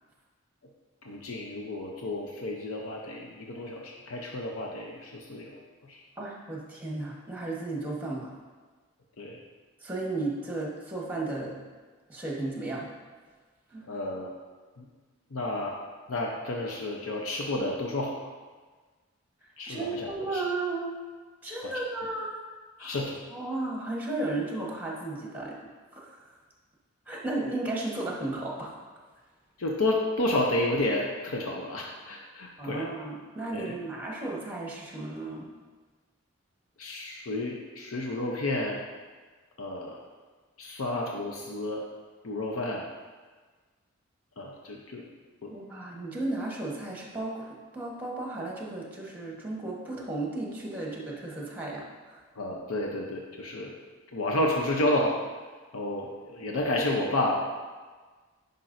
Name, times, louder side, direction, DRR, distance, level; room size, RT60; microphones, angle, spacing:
voice 1, 1.0-5.6 5.9-6.0 9.2-9.4 13.9-14.3 14.8-14.9 15.3-15.8 16.1-18.3 19.6-20.4 21.6-21.7 22.8-23.2 29.6-32.9 33.5-33.7 36.8-38.8 39.6-40.1 40.6-41.8 42.2-42.9 44.4-45.1 45.4-45.5 52.4-53.7 54.1-55.2 55.7-57.4, left 1 dB, 85° left, -1 dB, 0.7 m, -31 dB
voice 2, 6.2-8.3 9.8-11.6 12.1-12.9 13.7-13.9 19.7-21.0 21.4-22.4 22.8-23.0 23.3-25.6 25.9-26.2 27.1-28.7 32.6-35.5 45.5-52.2, right 2 dB, 10° right, -3 dB, 1.2 m, -34 dB
10.0 x 5.2 x 2.6 m, 1.4 s
head